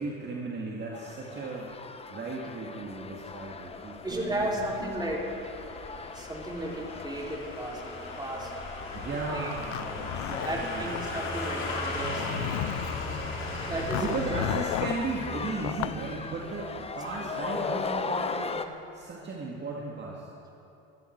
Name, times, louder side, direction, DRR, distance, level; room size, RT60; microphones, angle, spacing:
voice 1, 0.0-5.0 8.9-11.4 12.2-12.7 13.9-20.3, right 3 dB, 35° right, -3 dB, 2.2 m, -36 dB
sound 1, 0.9-18.7, left 4 dB, 20° left, 0.9 m, -39 dB
sound 2, 3.1-18.0 18.3-18.4, left 2 dB, 40° left, 3.7 m, -38 dB
voice 2, 4.0-5.3 6.1-8.5 9.3-9.5 10.4-12.3 13.6-14.2 17.1-17.2, right 1 dB, 15° right, -2 dB, 3.7 m, -34 dB
Zipper (clothing), 9.5-11.0 11.9-13.1 13.9-15.0 15.6-16.0, left 18 dB, 70° left, 0.5 m, -34 dB
21.5 x 13.0 x 4.7 m, 2.9 s
supercardioid pair, 90°, 30 cm